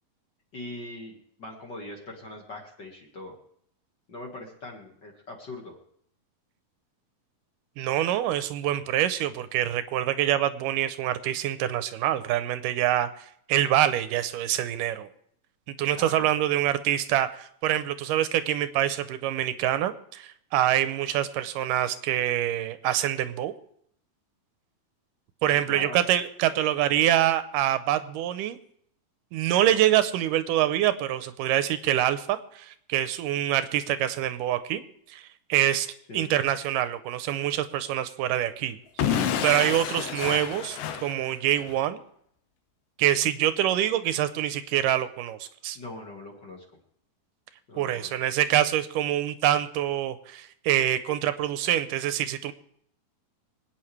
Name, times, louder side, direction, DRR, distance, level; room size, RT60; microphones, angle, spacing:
voice 1, 0.5-3.4 4.1-5.7 15.9-16.3 25.5-26.0 36.1-36.4 45.7-46.6 47.7-48.1, left 2 dB, 40° left, 0 dB, 2.0 m, -41 dB
voice 2, 7.8-15.1 15.8-23.5 25.4-28.6 29.3-34.8 35.1-35.9 36.1-42.0 43.0-45.8 47.8-52.5, right 12 dB, 85° right, 11 dB, 2.3 m, -25 dB
Explosion / Shatter, 39.0-41.8, left 9 dB, 85° left, 2.5 m, -29 dB
24.5 x 9.2 x 3.3 m, 0.67 s
omnidirectional pair, 3.8 m